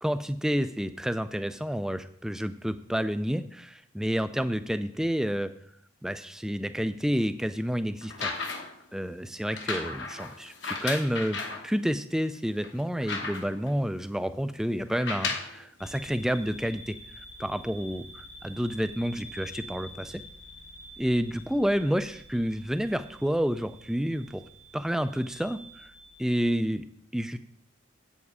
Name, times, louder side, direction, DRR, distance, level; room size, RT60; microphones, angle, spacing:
voice 1, 0.0-5.5 6.0-8.3 8.9-20.2 21.0-24.4 24.7-25.9 26.2-26.8 27.1-27.4, equal, ahead, 11 dB, 0.3 m, -29 dB
sound 1, 8.0-8.8 9.5-11.7 12.2-12.3 12.6-13.7 14.9-15.6 16.5-16.6, left 4 dB, 55° left, 1.1 m, -34 dB
sound 2, 15.8-26.6, equal, 85° left, 2.3 m, -48 dB
8.1 x 7.3 x 4.8 m, 0.69 s
head